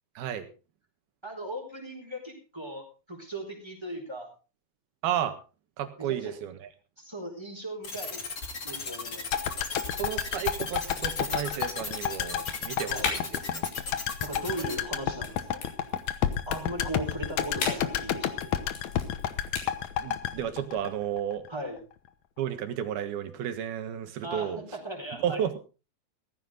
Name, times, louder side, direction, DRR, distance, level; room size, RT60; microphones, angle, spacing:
voice 1, 0.2-0.5 5.0-5.4 5.8-6.7 10.0-13.6 20.0-21.4 22.4-24.6 25.2-25.5, right 10 dB, 80° right, 8 dB, 3.5 m, -32 dB
voice 2, 1.2-4.3 6.0-6.3 7.0-8.2 8.6-9.2 12.9-13.1 14.2-15.6 16.5-18.5 21.5-21.8 24.2-25.5, right 1 dB, 5° right, 3 dB, 4.6 m, -38 dB
sound 1, 7.8-14.8, left 4 dB, 30° left, 1.9 m, -36 dB
sound 2, 8.5-19.9, left 5 dB, 85° left, 5.2 m, -42 dB
sound 3, 9.3-21.5 21.8-21.9, left 10 dB, 65° left, 1.9 m, -31 dB
16.5 x 14.5 x 3.8 m, 0.33 s
omnidirectional pair, 4.3 m